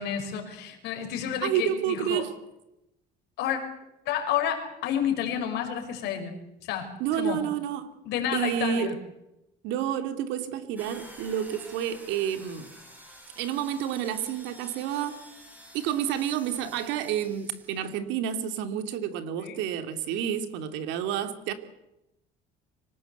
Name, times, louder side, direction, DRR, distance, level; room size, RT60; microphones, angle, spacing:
voice 1, 0.0-2.2 3.4-3.6 4.1-6.3 6.6-6.9 7.2-7.4 8.1-8.9 19.4-19.6, left 9 dB, 65° left, 5.9 m, -30 dB
voice 2, 1.4-2.3 7.0-7.9 8.3-9.0 9.6-12.7 13.4-15.2 15.7-21.5, right 9 dB, 80° right, 2.6 m, -29 dB
sound 1, 10.8-17.9, equal, 10° right, 5.6 m, -49 dB
25.0 x 19.5 x 8.0 m
cardioid pair, 160°, 18 cm